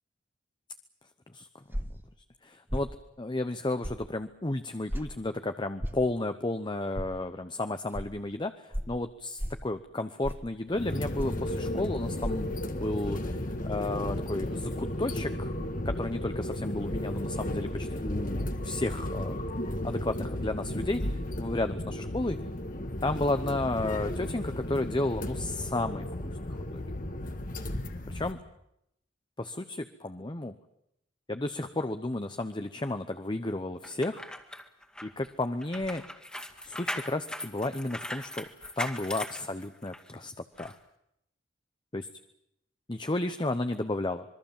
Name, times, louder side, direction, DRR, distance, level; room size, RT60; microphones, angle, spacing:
sound 1, 1.7-2.0 2.7-2.9 3.8-4.0 4.9-5.1 5.8-6.0 6.9-7.1 7.9-8.1 8.7-8.9 9.4-9.6 10.2-10.5 11.2-11.5 12.2-12.3, equal, 10° right, 1.5 m, -33 dB
voice 1, 2.4-2.9 3.2-15.5 15.8-19.4 19.8-22.4 23.0-26.8 28.1-28.4 29.4-30.5 31.3-34.3 35.0-36.0 36.6-38.5 38.8-40.3 40.6-40.7 41.9-42.1 42.9-44.2, left 2 dB, 25° left, 8 dB, 0.9 m, -33 dB
sound 2, 10.7-28.3, left 1 dB, 45° left, 1.8 m, -34 dB
sound 3, 33.8-40.1 40.6-40.7, left 1 dB, 5° left, 2.1 m, -39 dB
26.5 x 22.0 x 7.3 m, 0.78 s
head